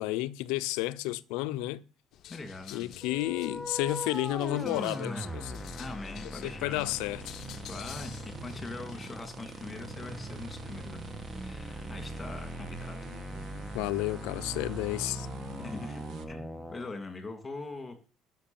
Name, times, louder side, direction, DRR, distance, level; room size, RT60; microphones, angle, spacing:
voice 1, 0.0-1.8 2.7-5.6 6.3-7.3 13.7-15.3, left 17 dB, 90° left, 0.7 m, -32 dB
sound 1, 2.1-9.3, left 11 dB, 50° left, 0.8 m, -50 dB
voice 2, 2.3-3.0 4.5-5.2 5.8-6.9 7.7-11.0 11.4-13.0 15.6-16.0 16.3-18.0, left 3 dB, 20° left, 2.5 m, -42 dB
sound 2, 3.0-16.9, equal, ahead, 1.3 m, -41 dB
sound 3, 6.9-16.2, right 5 dB, 55° right, 1.5 m, -47 dB
12.0 x 6.1 x 7.1 m
cardioid pair, 140°, 0 cm